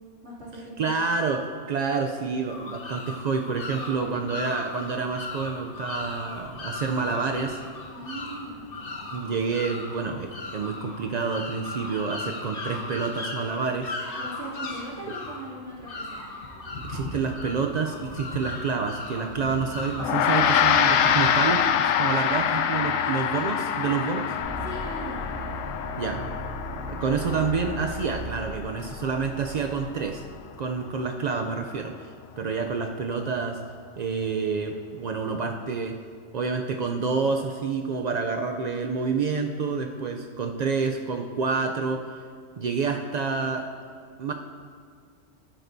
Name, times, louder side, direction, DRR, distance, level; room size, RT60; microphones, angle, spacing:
voice 1, 0.2-0.9 3.7-4.6 7.9-8.6 14.2-16.2 22.8-23.2 24.6-25.2 39.8-40.2, right 1 dB, 55° right, -8 dB, 2.9 m, -40 dB
voice 2, 0.8-7.6 9.1-13.9 16.8-24.4 26.0-26.2 26.9-30.2 30.6-33.6 34.0-36.0 36.3-42.1 42.6-43.7 44.2-44.3, right 5 dB, 80° right, 4 dB, 0.3 m, -28 dB
sound 1, 2.5-21.5, left 2 dB, 50° left, 1.1 m, -37 dB
Gong, 20.0-29.5, left 8 dB, 85° left, 1.0 m, -25 dB
sound 2, 24.4-30.4, equal, 35° right, 2.5 m, -37 dB
12.5 x 10.5 x 2.7 m, 2.1 s
omnidirectional pair, 1.3 m